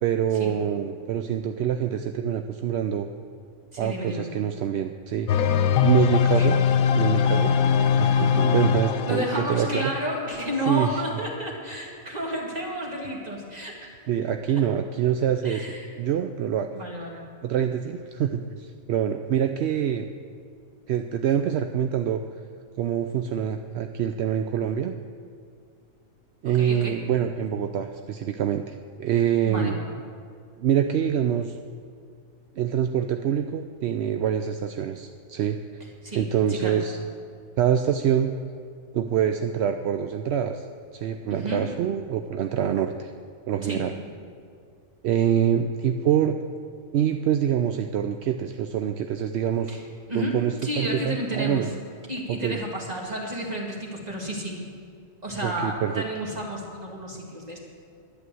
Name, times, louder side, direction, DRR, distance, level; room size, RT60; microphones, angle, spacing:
voice 1, 0.0-3.1 3.8-5.3 5.8-6.6 6.9-7.6 7.9-9.9 10.7-11.0 14.1-15.7 16.0-16.7 17.4-20.1 20.9-22.2 22.8-24.9 26.4-29.8 30.6-31.6 32.6-35.6 36.1-37.0 37.6-38.3 38.9-40.7 40.9-43.1 43.5-43.9 45.0-46.4 46.9-49.8 50.1-51.7 52.3-52.6 55.4-56.0, right 9 dB, 65° right, 7 dB, 0.7 m, -25 dB
voice 2, 3.7-4.3 6.2-6.5 9.1-14.0 14.5-14.6 15.4-15.9 16.7-17.2 26.4-27.0 29.4-29.8 36.0-36.8 41.3-41.7 43.6-43.9 49.7-49.8 50.1-51.7 52.1-54.6 55.2-57.6, equal, 30° right, -2 dB, 2.4 m, -31 dB
sound 1, 5.3-11.0, left 7 dB, 85° left, 1.1 m, -22 dB
11.0 x 10.0 x 7.7 m, 2.3 s
omnidirectional pair, 1.4 m